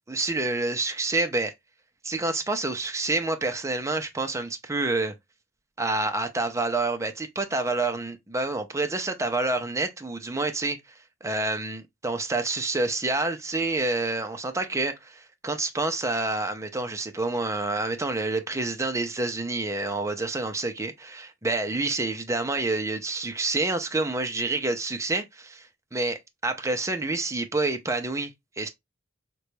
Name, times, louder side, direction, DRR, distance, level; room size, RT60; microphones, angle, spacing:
voice 1, 0.0-1.5 2.0-5.1 5.8-10.8 11.2-28.7, right 2 dB, 15° right, 0.5 m, -28 dB
3.8 x 2.2 x 3.0 m
head